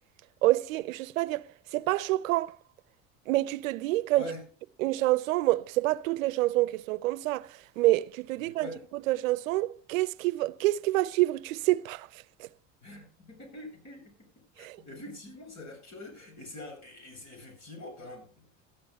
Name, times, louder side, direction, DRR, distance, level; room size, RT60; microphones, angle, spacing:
voice 1, 0.4-1.5 1.7-2.5 3.3-4.2 4.8-8.7 9.1-12.1 12.4-12.5 14.6-14.8, right 18 dB, 90° right, 0.7 m, -27 dB
voice 2, 8.5-8.8 12.8-14.1 14.6-18.3, left 1 dB, 45° left, 7.9 m, -44 dB
17.5 x 13.0 x 2.4 m
supercardioid pair, 90°, 39 cm